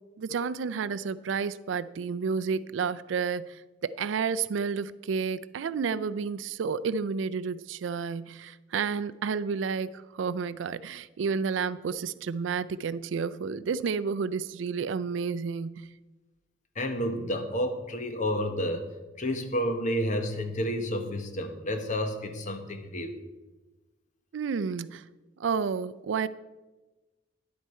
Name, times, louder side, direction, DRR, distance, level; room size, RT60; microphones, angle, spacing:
voice 1, 0.2-15.7 24.3-25.1 25.4-26.3, right 5 dB, 85° right, 0.4 m, -31 dB
voice 2, 16.7-18.9 19.2-23.2, equal, 40° left, 1.0 m, -30 dB
10.5 x 8.2 x 4.3 m
head